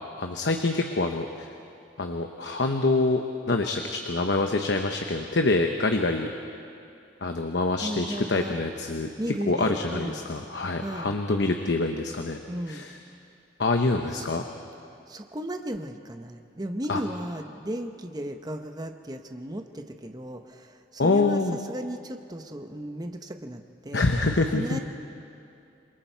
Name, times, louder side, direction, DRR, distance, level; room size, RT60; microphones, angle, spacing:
voice 1, 0.2-1.5 2.0-3.2 3.5-6.3 7.2-12.4 12.7-12.9 13.6-14.4 16.9-17.0 21.0-21.6 23.9-24.8, left 3 dB, 70° left, 4 dB, 1.0 m, -26 dB
voice 2, 7.8-8.6 9.2-10.2 10.8-11.1 12.5-12.9 14.1-14.3 15.1-24.1 24.5-24.8, right 1 dB, 20° right, 6 dB, 1.0 m, -35 dB
27.5 x 22.5 x 4.6 m, 2.6 s
head